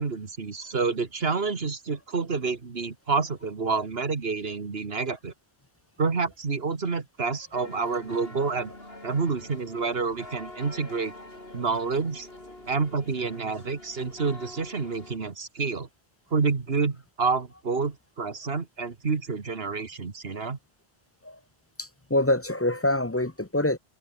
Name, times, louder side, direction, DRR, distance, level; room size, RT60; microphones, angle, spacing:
voice 1, 0.0-5.3 6.0-8.7 9.0-11.1 11.5-12.3 12.7-15.9 16.3-20.6, right 4 dB, 60° right, 2.0 m, -28 dB
sound 1, 7.5-15.2, left 1 dB, 55° left, 6.4 m, -45 dB
voice 2, 21.8-23.8, left 1 dB, 15° left, 0.8 m, -25 dB
omnidirectional pair, 1.2 m